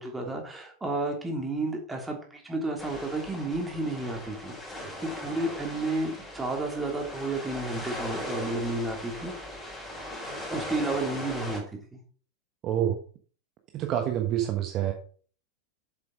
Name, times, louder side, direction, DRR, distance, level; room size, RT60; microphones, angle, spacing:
voice 1, 0.0-4.9 5.2-9.3 10.5-11.6 11.9-12.0, right 2 dB, 10° right, 1 dB, 3.0 m, -32 dB
sound 1, 2.8-11.6, left 1 dB, 15° left, 4.2 m, -38 dB
voice 2, 12.6-13.0 13.7-14.9, right 11 dB, 35° right, 4 dB, 1.2 m, -27 dB
7.5 x 7.5 x 5.1 m, 0.43 s
figure-of-eight pair, 90°, 0 cm